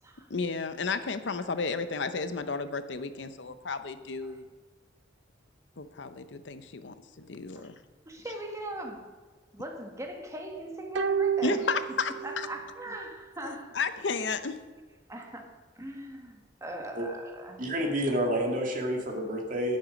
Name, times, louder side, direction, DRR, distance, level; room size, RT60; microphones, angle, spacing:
voice 1, 0.3-4.4 5.8-7.7 11.4-12.5 13.7-14.6, left 4 dB, 75° left, 0.8 m, -32 dB
voice 2, 8.1-9.1 9.5-12.0 12.2-13.8 15.1-17.7, right 1 dB, 15° right, 1.7 m, -40 dB
sound 1, 11.0-12.6 12.9-13.0, right 7 dB, 75° right, 0.5 m, -30 dB
voice 3, 17.6-19.8, equal, 45° right, 2.1 m, -29 dB
11.0 x 10.5 x 5.2 m
head